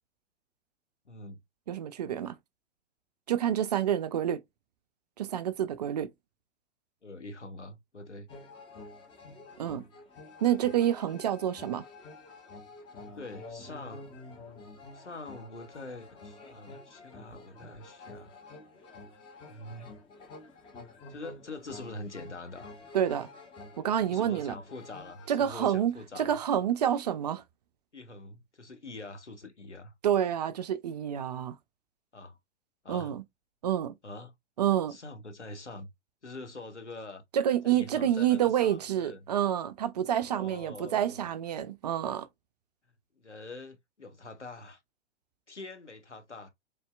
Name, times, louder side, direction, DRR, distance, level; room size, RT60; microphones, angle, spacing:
voice 1, 1.0-1.4 7.0-8.3 9.6-9.8 13.1-14.2 14.9-18.3 19.5-19.9 21.1-22.7 24.1-26.4 27.9-29.9 32.1-32.4 32.8-33.1 34.0-34.3 34.9-35.9 36.2-37.2 37.6-39.3 40.2-41.3 43.2-44.8 45.5-46.5, left 2 dB, 85° left, 1.2 m, -44 dB
voice 2, 1.7-2.4 3.3-4.4 5.2-6.1 9.6-9.8 10.4-11.9 22.9-23.3 23.8-24.6 25.3-27.4 30.0-31.6 32.9-33.2 33.6-33.9 34.6-35.0 37.3-42.3, right 10 dB, 40° right, 0.4 m, -28 dB
sound 1, 8.3-25.3, left 3 dB, 15° left, 0.7 m, -49 dB
4.1 x 3.7 x 2.2 m
figure-of-eight pair, 110°, 34 cm